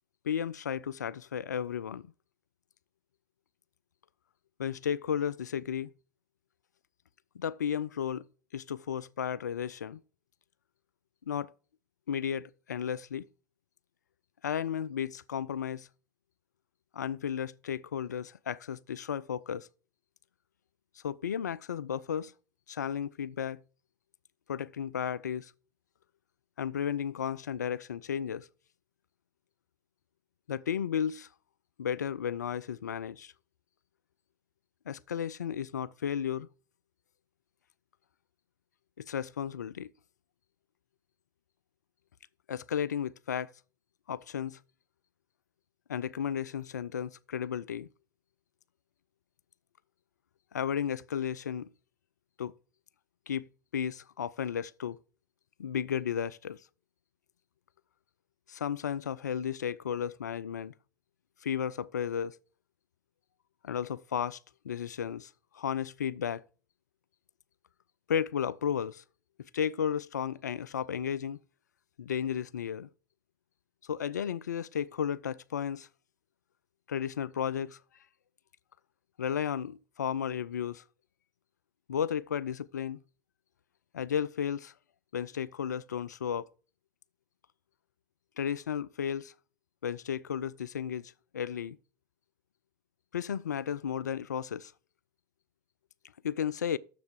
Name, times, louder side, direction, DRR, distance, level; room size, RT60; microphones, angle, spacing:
voice 1, 0.2-2.1 4.6-5.9 7.3-8.2 8.5-10.0 11.3-11.5 12.1-13.3 14.4-15.9 16.9-19.7 21.0-22.3 22.7-23.6 24.5-25.5 26.6-28.5 30.5-31.3 31.8-33.3 34.9-36.5 39.0-39.9 42.5-43.5 44.1-44.6 45.9-47.9 50.5-51.7 52.4-52.5 53.3-53.5 53.7-55.0 55.6-56.6 58.5-60.7 61.4-62.4 63.6-64.4 64.6-66.4 68.1-69.0 69.5-71.4 72.0-72.9 73.8-75.9 76.9-77.8 79.2-80.8 81.9-83.0 83.9-84.7 85.1-86.5 88.4-89.3 89.8-91.8 93.1-94.7 96.2-96.8, left 8 dB, 80° left, 0.3 m, -33 dB
7.0 x 6.8 x 6.4 m
figure-of-eight pair, 65°, 9 cm